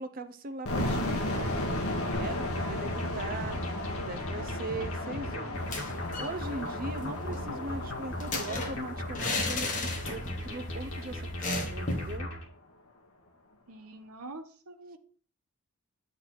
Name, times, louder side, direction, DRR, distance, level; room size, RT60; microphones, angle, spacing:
voice 1, 0.0-1.6 2.1-3.6 4.0-5.7 6.2-12.3, right 2 dB, 40° right, 9 dB, 0.6 m, -40 dB
sound 1, 0.6-11.5, left 1 dB, 80° left, 1.4 m, -35 dB
sound 2, 2.1-12.4, left 1 dB, 60° left, 1.9 m, -38 dB
sound 3, 5.6-6.4 6.7-6.8 7.0-10.5 10.8-10.9 11.4-12.2, left 2 dB, 35° left, 1.1 m, -34 dB
voice 2, 13.7-15.0, right 2 dB, 85° right, 6 dB, 1.1 m, -45 dB
7.7 x 3.9 x 4.2 m, 0.44 s
head